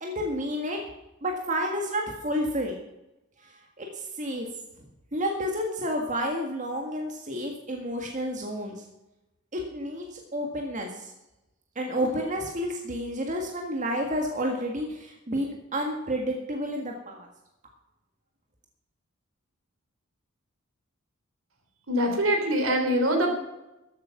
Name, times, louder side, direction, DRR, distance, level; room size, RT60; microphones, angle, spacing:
voice 1, 0.0-0.8 1.2-2.8 3.4-3.5 3.8-3.9 4.2-4.5 5.1-8.8 9.5-11.1 11.8-17.3, equal, 35° right, 1 dB, 1.8 m, -30 dB
voice 2, 21.9-23.4, equal, 75° right, 4 dB, 3.3 m, -24 dB
13.5 x 8.5 x 5.8 m, 0.94 s
head